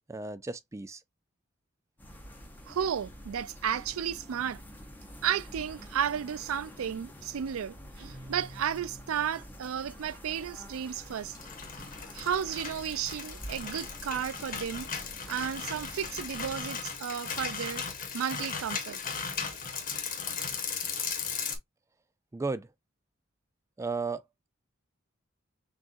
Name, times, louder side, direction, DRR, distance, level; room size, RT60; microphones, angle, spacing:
voice 1, 0.1-1.0 22.3-22.7 23.8-24.2, right 3 dB, 15° right, 0.3 m, -34 dB
sound 1, 2.0-16.7, equal, 10° left, 0.8 m, -48 dB
voice 2, 2.7-4.6 5.2-7.7 8.0-11.3 12.1-14.9 15.3-17.8 18.1-19.0, right 8 dB, 85° right, 0.4 m, -33 dB
Guitar, 8.0-9.7, right 1 dB, 65° right, 3.2 m, -50 dB
sound 2, 11.1-21.6, left 6 dB, 45° left, 1.1 m, -37 dB
6.2 x 2.5 x 2.5 m
head